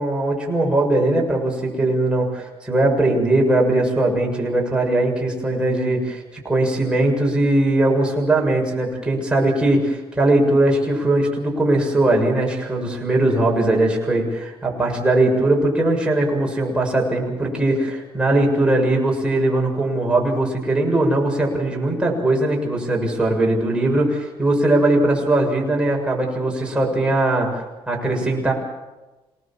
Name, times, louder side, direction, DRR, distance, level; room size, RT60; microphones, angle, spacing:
voice 1, 0.0-28.5, right 2 dB, 10° right, -1 dB, 7.1 m, -20 dB
27.5 x 19.5 x 7.6 m, 1.1 s
cardioid pair, 105°, 10 cm